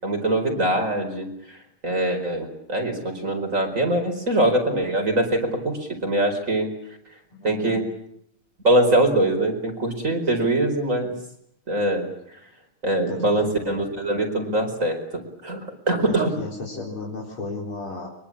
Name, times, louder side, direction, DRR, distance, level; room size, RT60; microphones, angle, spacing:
voice 1, 0.0-1.6 1.8-6.7 7.4-7.8 8.6-11.1 11.7-12.1 12.8-16.3, right 1 dB, 35° right, 3 dB, 5.0 m, -23 dB
voice 2, 7.3-7.8 10.4-10.5 13.1-13.8 16.1-18.1, left 3 dB, 75° left, -2 dB, 5.0 m, -35 dB
24.0 x 23.0 x 8.7 m, 0.72 s
omnidirectional pair, 2.3 m